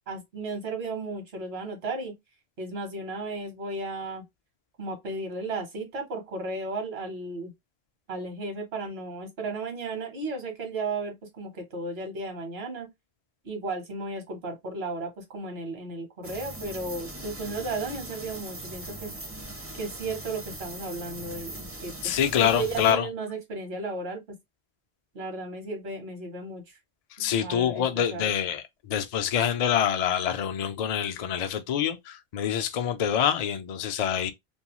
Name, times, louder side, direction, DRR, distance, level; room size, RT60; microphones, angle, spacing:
voice 1, 0.1-2.2 2.6-4.2 4.8-7.5 8.1-12.9 13.4-19.1 19.8-22.1 22.4-24.4 25.1-26.8 27.2-27.8 28.1-28.3, right 3 dB, 75° right, 1.2 m, -34 dB
sound 1, 16.2-22.9, right 1 dB, 20° right, 0.4 m, -40 dB
voice 2, 22.0-23.1 27.2-34.3, left 9 dB, 55° left, 0.4 m, -26 dB
2.7 x 2.3 x 2.9 m
omnidirectional pair, 1.0 m